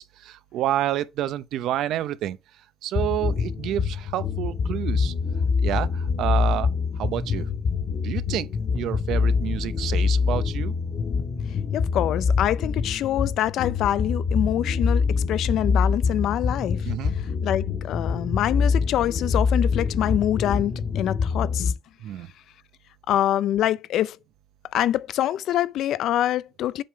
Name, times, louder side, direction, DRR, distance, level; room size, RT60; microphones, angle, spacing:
voice 1, 0.0-2.4 2.8-5.1 5.6-6.7 7.0-7.5 8.0-8.5 8.7-10.7 16.8-17.1 22.0-22.3, right 12 dB, 85° right, 0.7 m, -29 dB
sound 1, 2.9-21.7, left 5 dB, 65° left, 2.0 m, -25 dB
voice 2, 11.7-16.9 17.4-21.7 23.1-24.2 24.7-26.8, left 12 dB, 80° left, 0.4 m, -25 dB
7.8 x 3.6 x 4.5 m
cardioid pair, 90°, 0 cm